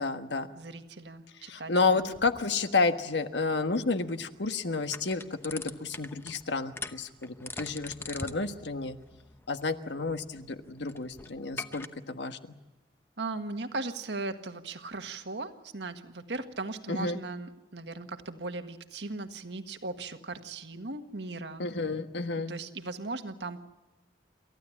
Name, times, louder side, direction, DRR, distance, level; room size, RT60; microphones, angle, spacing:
voice 1, 0.0-0.5 1.5-9.0 9.5-12.4 16.9-17.2 21.6-22.5, left 3 dB, 85° left, 8 dB, 1.4 m, -30 dB
voice 2, 0.5-2.1 13.2-21.6 22.5-23.6, right 3 dB, 85° right, 7 dB, 1.7 m, -38 dB
sound 1, 2.0-11.9, left 3 dB, 15° left, 0.8 m, -45 dB
28.5 x 14.5 x 8.5 m, 1.1 s
head